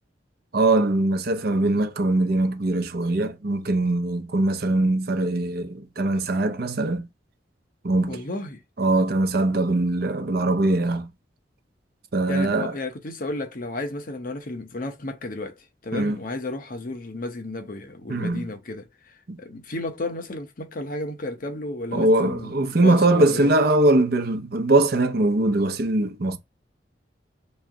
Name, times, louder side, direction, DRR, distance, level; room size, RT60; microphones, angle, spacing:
voice 1, 0.5-7.1 7.8-8.2 8.8-11.1 12.1-12.7 15.9-16.2 18.1-18.4 19.3-19.4 21.9-26.4, right 2 dB, 60° right, 0.7 m, -21 dB
voice 2, 8.1-8.6 12.3-23.5, left 2 dB, 50° left, 0.8 m, -33 dB
3.3 x 3.1 x 3.7 m
head